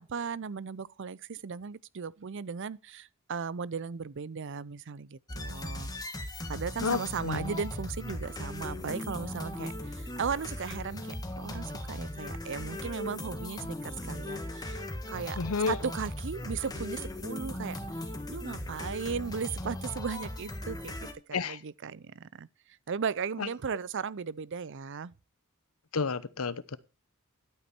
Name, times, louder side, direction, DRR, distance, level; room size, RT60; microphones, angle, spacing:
voice 1, 0.0-5.9 6.5-15.4 15.7-17.8 18.3-25.1, right 6 dB, 60° right, 0.5 m, -37 dB
sound 1, 5.3-21.1, left 1 dB, 20° left, 1.7 m, -38 dB
voice 2, 6.8-7.5 15.4-15.8 21.3-21.6 23.4-23.5 25.9-26.8, left 5 dB, 85° left, 0.9 m, -31 dB
11.5 x 8.5 x 4.5 m
head